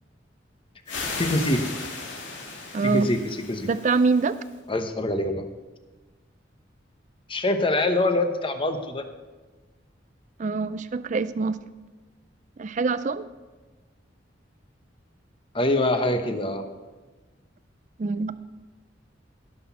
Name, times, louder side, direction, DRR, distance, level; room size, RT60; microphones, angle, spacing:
sound 1, 0.9-4.5, left 3 dB, 80° left, 2.2 m, -36 dB
voice 1, 1.2-1.6 2.8-3.7 4.7-5.4 7.3-9.0 15.5-16.6, left 1 dB, 25° left, 6 dB, 0.9 m, -24 dB
voice 2, 2.7-3.1 3.6-4.4 10.4-11.6 12.6-13.3 18.0-18.4, right 4 dB, 40° right, 14 dB, 0.4 m, -24 dB
17.5 x 6.1 x 5.6 m, 1.2 s
head